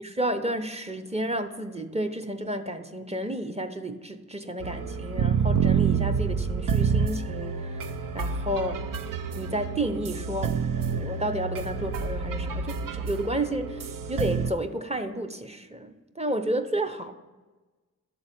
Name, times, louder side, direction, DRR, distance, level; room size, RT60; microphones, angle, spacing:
voice 1, 0.0-7.8 8.1-8.7 9.3-10.6 10.9-17.1, right 1 dB, 20° right, 6 dB, 0.8 m, -31 dB
sound 1, 4.6-14.5, right 6 dB, 85° right, 0.5 m, -28 dB
11.5 x 4.0 x 7.4 m, 1.2 s
cardioid pair, 50°, 32 cm